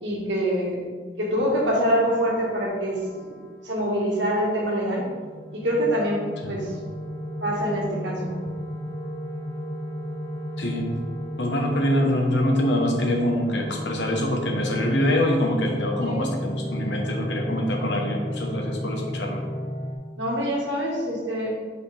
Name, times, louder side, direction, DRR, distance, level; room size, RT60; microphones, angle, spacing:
voice 1, 0.0-0.8 1.2-3.3 3.6-5.1 5.5-6.7 7.4-8.4 16.0-16.3 20.2-21.5, equal, 85° right, -4 dB, 1.7 m, -25 dB
sound 1, 1.4-4.0 4.7-19.9, equal, 45° left, 1.2 m, -33 dB
voice 2, 10.6-10.9 11.4-19.4, left 1 dB, 75° left, 1 dB, 1.2 m, -25 dB
8.5 x 5.0 x 3.5 m, 1.5 s
head